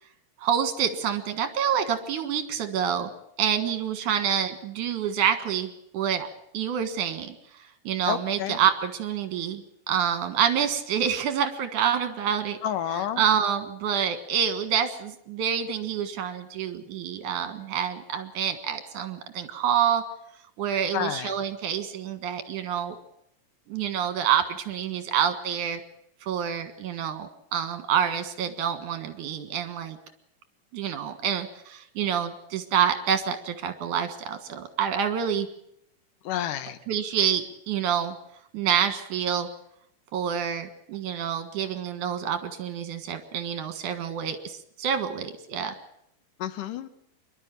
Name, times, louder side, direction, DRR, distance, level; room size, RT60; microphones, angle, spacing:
voice 1, 0.4-3.1 3.4-6.3 6.5-12.6 12.9-20.0 20.6-23.0 23.7-25.8 26.2-30.0 30.7-35.5 36.9-38.1 38.5-39.5 40.1-45.7, right 8 dB, 70° right, 9 dB, 3.1 m, -27 dB
voice 2, 8.1-8.6 12.6-13.2 20.9-21.3 36.2-36.8 46.4-46.9, left 10 dB, 80° left, 11 dB, 2.7 m, -30 dB
26.0 x 12.0 x 9.2 m, 0.76 s
omnidirectional pair, 3.7 m